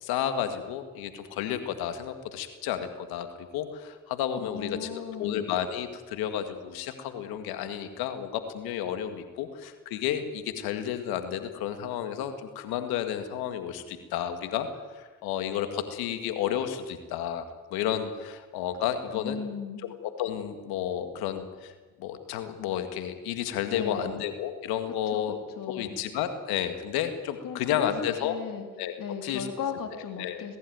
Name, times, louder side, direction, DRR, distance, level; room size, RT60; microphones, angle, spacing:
voice 1, 0.0-3.3 3.5-14.7 14.9-17.5 17.7-19.4 19.8-21.7 22.0-25.4 25.7-28.3 28.8-28.9 29.2-29.5 30.2-30.5, left 10 dB, 85° left, 8 dB, 2.0 m, -31 dB
voice 2, 4.4-5.5 19.1-19.8 23.7-24.1 25.1-25.2 25.5-26.0 27.4-28.7 29.0-30.6, left 6 dB, 65° left, 5 dB, 2.7 m, -36 dB
21.0 x 15.0 x 9.5 m, 1.3 s
supercardioid pair, 55°, 36 cm